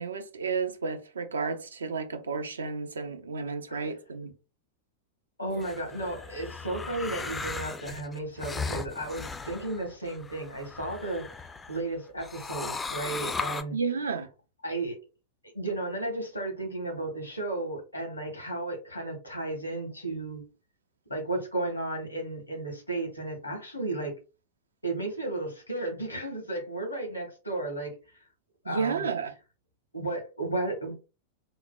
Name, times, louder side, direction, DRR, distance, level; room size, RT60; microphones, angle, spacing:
voice 1, 0.0-4.3 13.7-14.3 28.7-29.3, right 5 dB, 70° right, 0.4 m, -32 dB
voice 2, 5.4-11.3 11.7-13.8 14.6-15.0 15.5-20.4 21.1-24.1 24.8-27.9 28.6-29.1 29.9-30.9, right 2 dB, 85° left, 1.1 m, -34 dB
sound 1, 5.5-11.8 12.2-13.6, left 4 dB, 15° left, 0.3 m, -37 dB
3.7 x 2.1 x 2.2 m
figure-of-eight pair, 90°, 0 cm